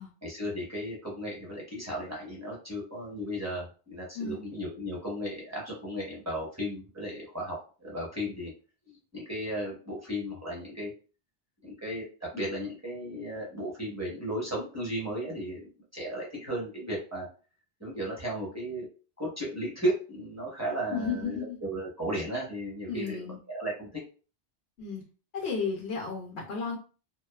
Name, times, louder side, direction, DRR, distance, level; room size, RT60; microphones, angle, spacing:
voice 1, 0.2-8.5 8.9-10.9 11.6-17.3 17.8-18.9 19.2-24.0, equal, 15° right, -5 dB, 0.8 m, -35 dB
voice 2, 20.9-21.6 22.9-23.4 24.8-25.0 25.3-26.8, left 5 dB, 75° left, -1 dB, 0.9 m, -33 dB
2.5 x 2.2 x 2.3 m, 0.37 s
omnidirectional pair, 1.1 m